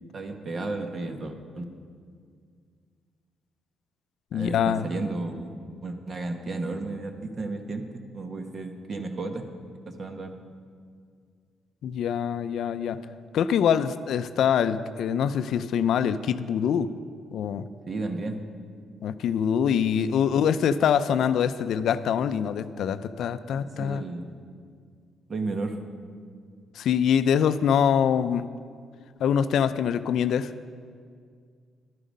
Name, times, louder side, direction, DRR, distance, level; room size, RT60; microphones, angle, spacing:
voice 1, 0.1-1.7 4.3-5.5 5.8-9.5 9.9-10.3 17.9-18.4 20.2-20.3 23.5-24.4 25.3-25.8, right 3 dB, 45° right, 6 dB, 1.2 m, -33 dB
voice 2, 4.3-4.9 11.8-13.0 13.3-16.9 17.3-17.6 19.0-24.0 26.8-28.4 29.2-30.5, left 8 dB, 70° left, 13 dB, 0.4 m, -24 dB
11.5 x 10.0 x 5.3 m, 2.1 s
cardioid pair, 90°, 0 cm